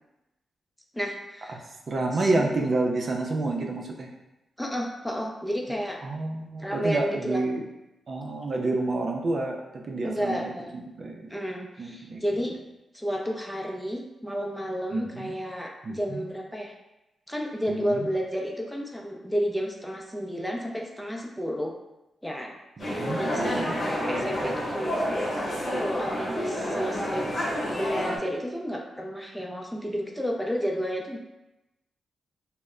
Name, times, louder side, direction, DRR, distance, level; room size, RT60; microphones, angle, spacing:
voice 1, 0.9-1.6 2.1-2.7 4.6-6.0 6.6-7.4 10.0-10.7 11.3-12.5 12.9-16.7 17.3-21.8 22.2-22.5 22.9-25.0 25.6-27.3 27.7-31.2, equal, 5° left, 0 dB, 0.5 m, -31 dB
voice 2, 1.9-4.1 6.0-7.6 8.1-11.2 11.8-12.2 14.9-15.3 15.8-16.2 17.7-18.1 22.8-23.7, right 2 dB, 55° right, 1 dB, 0.4 m, -29 dB
sound 1, 22.8-28.2, equal, 45° left, 0.9 m, -29 dB
2.1 x 2.1 x 3.5 m, 0.95 s
cardioid pair, 60°, 0 cm